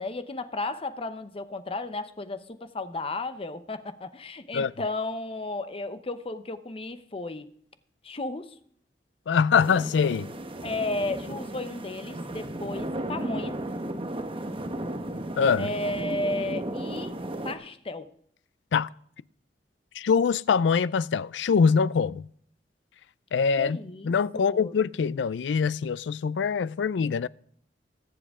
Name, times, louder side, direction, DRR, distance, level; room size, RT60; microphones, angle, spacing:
voice 1, 0.0-7.5 8.0-8.5 10.6-13.6 15.6-17.2 17.4-18.1 23.6-24.8, left 2 dB, 35° left, 0.8 m, -34 dB
voice 2, 9.3-10.3 15.4-15.7 18.7-18.9 20.0-22.2 23.3-23.8 24.0-27.3, left 6 dB, 85° left, 0.4 m, -23 dB
sound 1, 9.6-17.5, right 1 dB, 30° right, 1.0 m, -34 dB
21.5 x 7.7 x 3.7 m
head